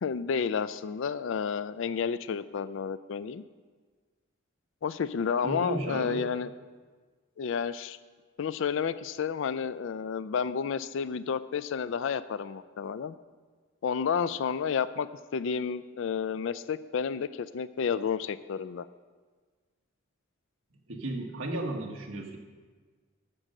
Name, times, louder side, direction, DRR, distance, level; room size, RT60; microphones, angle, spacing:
voice 1, 0.0-3.4 4.8-6.5 7.4-8.0 8.4-13.2 13.8-15.1 15.3-18.9, left 6 dB, 65° left, 15 dB, 0.4 m, -31 dB
voice 2, 5.4-6.2 20.9-22.4, right 2 dB, 80° right, 1 dB, 1.6 m, -34 dB
9.9 x 7.5 x 6.6 m, 1.4 s
head